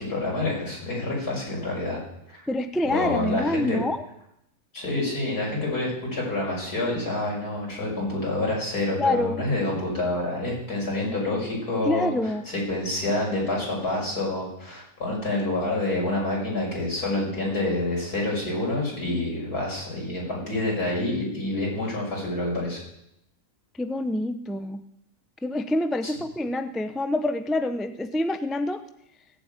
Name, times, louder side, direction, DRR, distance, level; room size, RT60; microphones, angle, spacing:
voice 1, 0.0-2.0 2.3-2.4 2.8-3.8 4.7-12.1 12.5-22.8 26.0-26.1, left 2 dB, 80° left, -3 dB, 6.6 m, -27 dB
voice 2, 2.5-4.0 9.0-9.4 11.9-12.4 23.8-24.8 25.4-28.8, left 1 dB, ahead, 10 dB, 0.3 m, -26 dB
16.5 x 8.1 x 8.9 m, 0.80 s
omnidirectional pair, 1.6 m